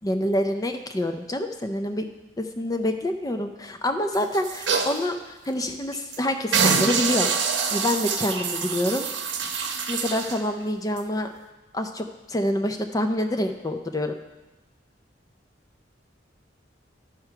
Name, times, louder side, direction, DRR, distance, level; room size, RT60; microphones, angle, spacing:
voice 1, 0.0-2.0 2.4-7.3 7.7-9.1 9.9-11.3 11.7-14.1, left 1 dB, 20° left, 6 dB, 0.5 m, -27 dB
sound 1, 4.1-5.0 5.5-5.6 5.9-6.2 6.5-10.4 11.0-11.1, right 5 dB, 80° right, 0.8 m, -25 dB
11.5 x 4.5 x 5.8 m, 1.1 s
head